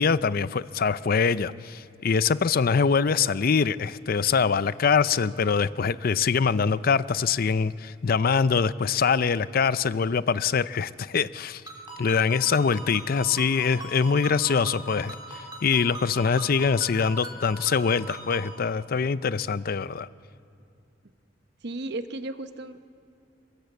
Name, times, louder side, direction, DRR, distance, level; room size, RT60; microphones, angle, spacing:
voice 1, 0.0-11.6 12.0-20.1, left 5 dB, 50° left, 16 dB, 0.5 m, -24 dB
Ringtone, 11.7-18.5, right 2 dB, 20° right, 4.0 m, -41 dB
voice 2, 21.6-22.8, right 2 dB, 60° right, 10 dB, 1.0 m, -34 dB
22.0 x 22.0 x 8.1 m, 2.7 s
head